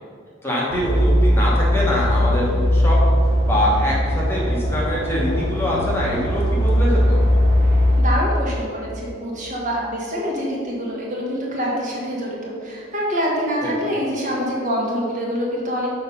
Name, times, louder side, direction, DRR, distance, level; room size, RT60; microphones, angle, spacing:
voice 1, 0.4-3.0 3.5-7.2 13.6-13.7, equal, 10° left, -5 dB, 1.1 m, -23 dB
sound 1, 0.7-8.0, equal, 65° right, 1.2 m, -19 dB
voice 2, 7.6-15.9, equal, 35° right, -4 dB, 1.5 m, -25 dB
6.2 x 5.0 x 5.5 m, 2.2 s
head